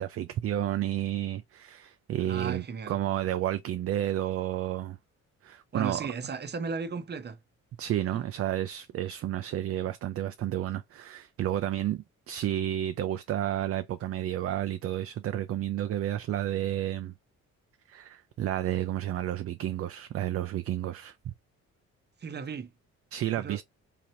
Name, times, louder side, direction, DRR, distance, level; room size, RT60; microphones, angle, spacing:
voice 1, 0.0-5.0 5.4-6.1 7.8-17.1 17.9-21.3 23.1-23.6, right 12 dB, 50° right, 0.4 m, -31 dB
voice 2, 2.2-3.0 5.7-7.4 22.2-22.7 23.4-23.6, right 5 dB, 35° right, 0.8 m, -35 dB
3.9 x 3.0 x 2.8 m
cardioid pair, 90°, 30 cm